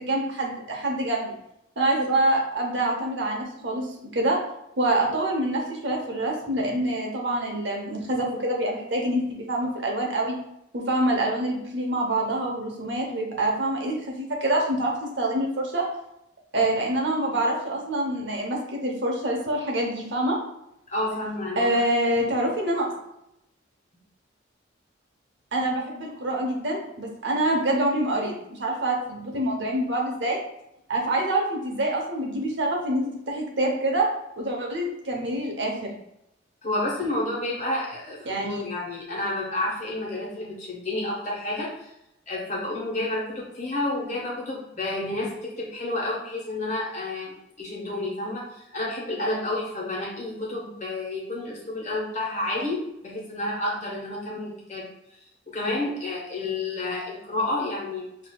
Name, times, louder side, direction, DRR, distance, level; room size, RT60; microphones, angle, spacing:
voice 1, 0.0-1.4 1.8-4.4 4.8-10.4 10.7-15.9 16.5-20.4 21.6-23.0 25.5-30.4 30.9-34.1 34.4-35.9 38.3-38.6, right 1 dB, 60° right, 0 dB, 0.9 m, -26 dB
voice 2, 20.9-21.8 36.6-41.9 42.3-54.8 55.5-58.1, left 2 dB, 35° left, -3 dB, 1.2 m, -30 dB
6.4 x 2.8 x 2.3 m, 0.82 s
head